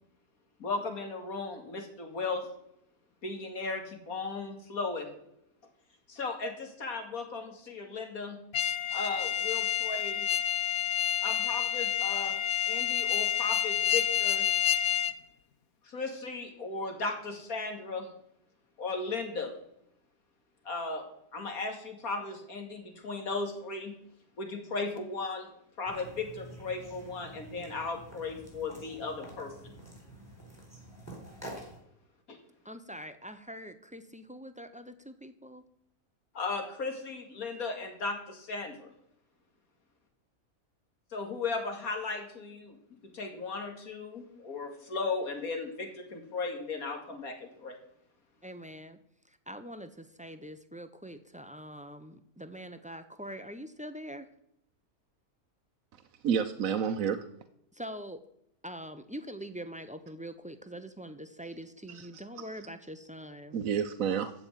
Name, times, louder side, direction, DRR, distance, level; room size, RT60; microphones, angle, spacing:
voice 1, 0.6-2.5 3.2-5.1 6.1-8.4 8.9-10.3 11.2-12.4 12.7-14.5 15.8-18.1 18.8-19.5 20.7-21.1 21.3-24.0 24.4-25.5 25.8-29.5 32.3-32.4 36.3-38.9 41.1-42.8 43.1-47.8, left 3 dB, 75° left, 4 dB, 2.6 m, -36 dB
sound 1, 8.5-15.1, left 10 dB, 60° left, 0.8 m, -29 dB
sound 2, 25.9-31.8, right 1 dB, 10° left, 4.4 m, -48 dB
voice 2, 32.6-35.6 48.4-49.0 49.5-54.3 57.7-58.2 58.6-63.6, equal, 10° right, 10 dB, 0.5 m, -44 dB
voice 3, 56.2-57.3 61.9-62.2 63.5-64.3, right 7 dB, 70° right, 7 dB, 1.2 m, -30 dB
14.5 x 5.4 x 9.1 m, 0.77 s
omnidirectional pair, 1.5 m